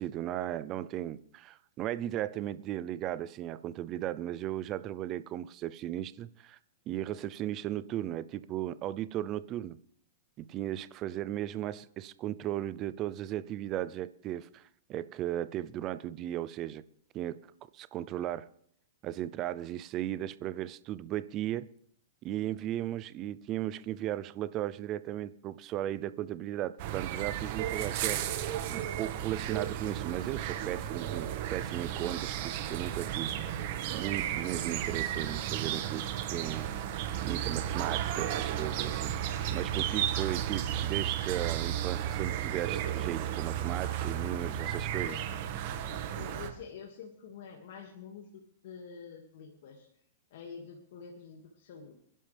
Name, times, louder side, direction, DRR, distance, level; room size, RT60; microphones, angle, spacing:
voice 1, 0.0-6.6 6.9-9.8 10.4-14.6 14.9-16.8 17.1-17.4 17.7-18.5 19.0-21.7 22.2-28.4 28.7-36.7 37.2-45.2, right 13 dB, 30° right, 0.6 m, -36 dB
sound 1, 26.8-46.5, right 10 dB, 50° right, 1.6 m, -33 dB
voice 2, 44.9-45.5 45.8-49.9 50.3-52.0, left 6 dB, 65° left, 2.2 m, -47 dB
28.5 x 11.0 x 3.5 m
hypercardioid pair, 150°, 0 cm